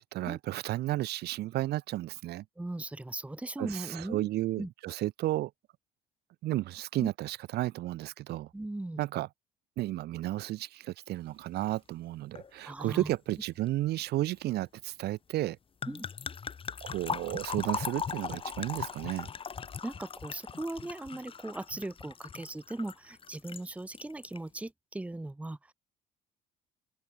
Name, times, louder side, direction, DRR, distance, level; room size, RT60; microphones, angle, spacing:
voice 1, 0.0-2.4 3.6-5.5 6.4-8.5 9.0-9.3 9.8-15.6 16.8-19.3, right 15 dB, 75° right, 2.1 m, -33 dB
voice 2, 2.6-4.3 4.6-4.7 7.0-7.1 8.5-9.0 12.6-13.2 15.9-16.1 19.8-25.7, right 2 dB, 10° right, 1.0 m, -38 dB
sound 1, 12.4-12.5 12.8-13.1 15.8-23.6 23.9-24.4, left 6 dB, 30° left, 1.5 m, -39 dB
cardioid pair, 110°, 17 cm